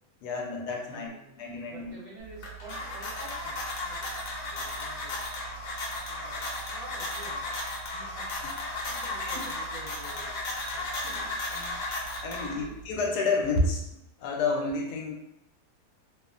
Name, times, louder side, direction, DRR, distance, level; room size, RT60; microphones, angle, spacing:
voice 1, 0.2-1.1 1.4-1.9 6.3-6.5 8.4-8.6 9.2-9.3 11.0-11.8 12.2-13.9 14.2-15.1, left 3 dB, 85° left, 1 dB, 1.1 m, -30 dB
voice 2, 0.9-4.2 4.5-5.1 6.1-10.9 11.2-11.3 12.3-12.8, right 2 dB, 50° right, -7 dB, 1.1 m, -49 dB
sound 1, 2.2-12.8, left 2 dB, 65° left, 1.0 m, -35 dB
2.9 x 2.0 x 2.4 m, 0.84 s
omnidirectional pair, 1.7 m